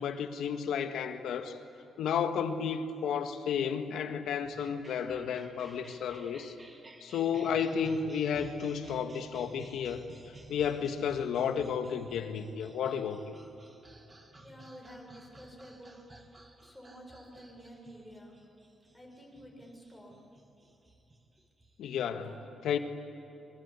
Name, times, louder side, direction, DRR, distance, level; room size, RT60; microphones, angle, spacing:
voice 1, 0.0-1.6 2.0-6.5 7.0-13.3 21.8-22.3 22.6-22.8, left 7 dB, 80° left, 1.7 m, -32 dB
sound 1, 4.4-22.1, right 2 dB, 20° right, 2.2 m, -54 dB
voice 2, 14.4-16.0 16.6-18.4 18.9-20.1 22.1-22.5, equal, ahead, 6.7 m, -51 dB
26.0 x 24.0 x 8.5 m
cardioid pair, 140°, 0 cm